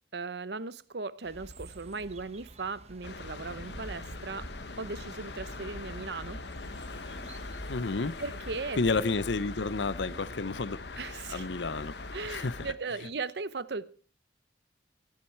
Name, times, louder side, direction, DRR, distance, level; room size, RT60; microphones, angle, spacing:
voice 1, 0.1-4.5 4.8-6.4 8.2-8.8 11.0-11.5 12.1-14.0, right 4 dB, 65° right, 0.8 m, -37 dB
sound 1, 1.2-8.1, right 1 dB, 35° right, 1.3 m, -49 dB
sound 2, 3.0-12.7, left 3 dB, 70° left, 1.2 m, -41 dB
voice 2, 7.7-8.2 8.8-11.0 11.3-11.9 12.3-12.7, left 3 dB, 85° left, 0.8 m, -31 dB
18.0 x 12.0 x 4.6 m
head